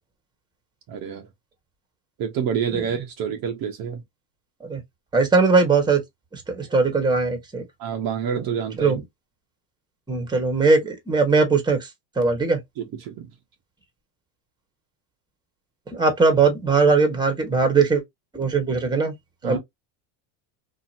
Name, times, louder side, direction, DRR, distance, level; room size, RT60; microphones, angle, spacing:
voice 1, 0.9-1.3 2.2-4.0 7.8-9.0 12.8-13.3 19.4-19.6, right 7 dB, 45° right, 0.8 m, -28 dB
voice 2, 5.1-6.0 6.3-7.6 8.8-9.0 10.1-11.8 12.2-12.6 15.9-18.0 18.3-19.1 19.4-19.6, right 4 dB, 10° right, 1.1 m, -20 dB
2.8 x 2.6 x 2.5 m
supercardioid pair, 115°, 49 cm